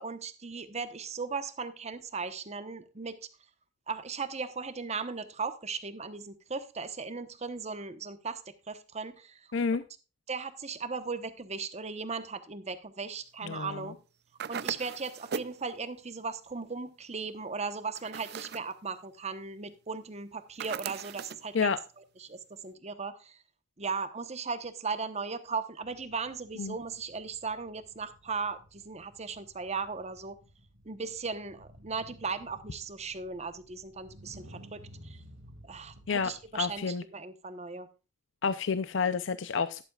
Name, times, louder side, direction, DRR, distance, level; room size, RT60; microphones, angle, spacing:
voice 1, 0.0-3.2 3.9-9.4 10.3-14.0 14.5-21.8 22.2-23.4 23.8-30.4 30.8-35.2 35.6-37.9, right 4 dB, 35° right, 11 dB, 1.0 m, -37 dB
voice 2, 9.5-9.8 13.4-13.9 21.5-21.8 26.6-26.8 36.1-37.0 38.4-39.8, left 5 dB, 65° left, 13 dB, 0.5 m, -30 dB
sound 1, 14.4-15.6 17.9-18.7 20.6-21.5, right 7 dB, 55° right, 0.5 m, -38 dB
sound 2, 25.8-36.8, equal, 90° right, 2.0 m, -54 dB
12.0 x 11.5 x 2.4 m, 0.31 s
head